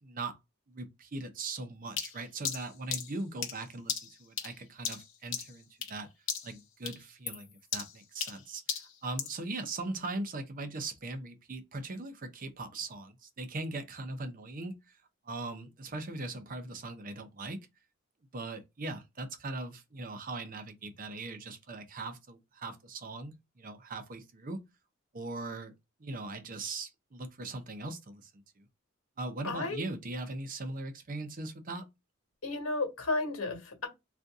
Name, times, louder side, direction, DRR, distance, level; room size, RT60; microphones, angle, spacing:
voice 1, 0.0-0.4 0.7-6.1 6.4-15.0 15.2-17.7 18.3-24.6 25.1-25.7 26.0-28.6 29.2-31.9, right 2 dB, 40° right, 0.6 m, -40 dB
sound 1, 2.0-6.0 6.3-6.6 6.9-9.4, left 8 dB, 65° left, 0.9 m, -37 dB
voice 2, 29.4-29.9 32.4-33.9, left 3 dB, 85° left, 1.3 m, -33 dB
2.6 x 2.5 x 3.5 m
head